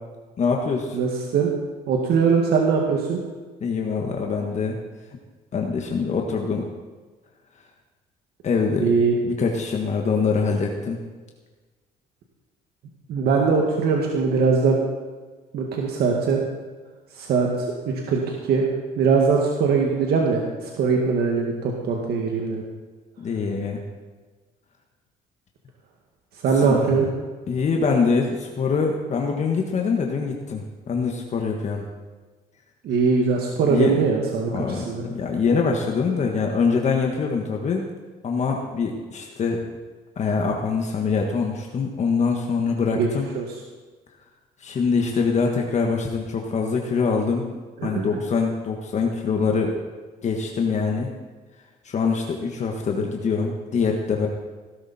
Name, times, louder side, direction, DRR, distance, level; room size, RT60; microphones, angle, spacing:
voice 1, 0.4-1.0 3.6-4.8 5.5-6.7 8.4-8.9 9.2-11.0 23.2-23.8 26.5-27.0 27.5-31.8 33.7-34.0 34.5-37.9 38.2-39.6 40.1-43.3 44.6-47.5 47.8-49.7 50.2-51.1 51.8-54.3, left 5 dB, 45° left, 1 dB, 1.6 m, -24 dB
voice 2, 0.9-1.5 1.9-3.2 8.8-9.1 13.1-14.8 15.5-16.4 17.2-17.5 17.9-18.7 19.0-22.6 26.4-27.1 32.8-35.0 42.9-43.1 43.3-43.4 47.8-48.1, right 5 dB, 70° right, 0 dB, 2.0 m, -21 dB
17.0 x 12.5 x 4.4 m, 1.4 s
cardioid pair, 110°, 17 cm